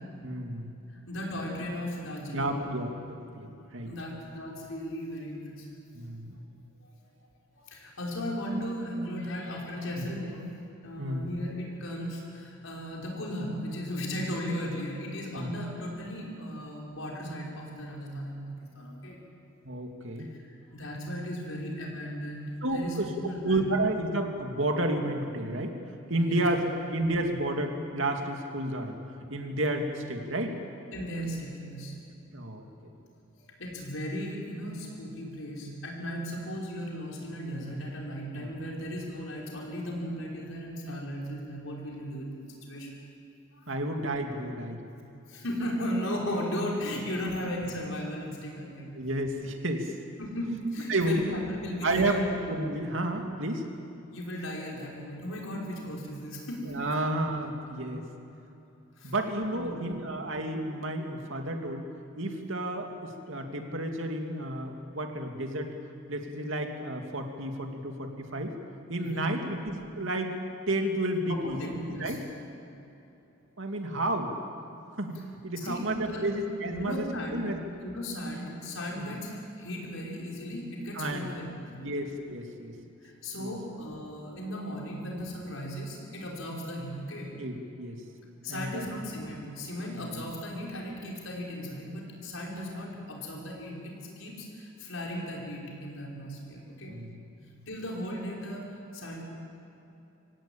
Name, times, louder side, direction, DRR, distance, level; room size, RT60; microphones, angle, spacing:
voice 1, 0.2-0.7 2.3-3.9 5.9-6.4 11.0-11.3 15.4-15.5 19.6-20.3 22.6-23.1 23.4-25.8 26.1-29.0 29.3-30.6 32.3-32.7 38.4-38.5 43.7-44.8 47.2-47.4 48.9-49.9 50.9-51.2 51.8-52.2 52.5-53.6 56.7-58.0 59.0-61.8 62.2-65.7 66.1-68.6 68.9-71.6 71.9-72.2 73.6-74.3 75.0-77.1 77.3-77.6 78.9-79.1 80.9-81.3 81.8-82.7 83.4-83.5 87.4-88.0 88.5-88.8 89.9-90.2 96.9-97.2, right 1 dB, 70° right, 3 dB, 2.6 m, -31 dB
voice 2, 0.9-2.7 3.9-5.8 6.8-7.0 7.5-10.4 10.8-18.4 18.8-19.2 20.2-23.7 26.1-26.5 30.9-31.9 33.3-42.9 43.5-43.7 45.3-48.9 50.2-52.3 54.1-56.6 59.0-59.1 59.5-60.1 69.0-69.3 71.3-72.2 75.6-76.3 76.7-77.4 77.8-82.0 83.0-87.3 88.4-97.0 97.7-99.2, equal, 80° left, -2 dB, 5.4 m, -36 dB
25.5 x 16.5 x 8.9 m, 2.9 s
head